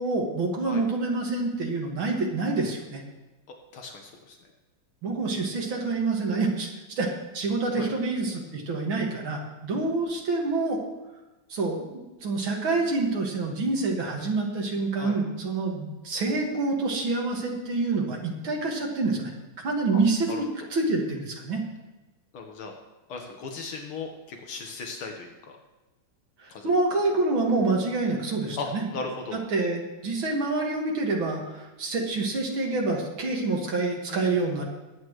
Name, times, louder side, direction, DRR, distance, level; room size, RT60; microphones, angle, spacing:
voice 1, 0.0-3.0 5.0-7.1 7.3-10.8 11.5-11.8 12.2-19.3 19.6-20.4 20.7-21.6 26.6-28.8 29.5-34.6, right 3 dB, 70° right, -1 dB, 2.8 m, -27 dB
voice 2, 3.5-4.4 7.8-7.9 14.9-15.2 19.9-20.0 20.3-20.4 22.3-22.7 23.1-25.6 26.5-26.7 28.6-28.7 28.9-29.4 34.1-34.4, left 4 dB, 85° left, 2 dB, 2.3 m, -37 dB
21.0 x 8.8 x 3.2 m, 1.1 s
omnidirectional pair, 2.3 m